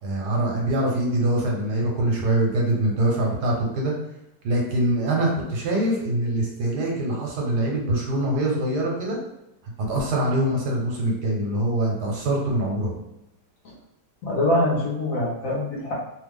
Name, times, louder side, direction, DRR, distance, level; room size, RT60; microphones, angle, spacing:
voice 1, 0.0-3.9 4.4-9.2 9.9-13.0, right 1 dB, 75° right, -1 dB, 1.3 m, -24 dB
voice 2, 14.2-15.9, left 1 dB, 60° left, -5 dB, 1.1 m, -23 dB
3.1 x 2.2 x 3.4 m, 0.91 s
omnidirectional pair, 1.8 m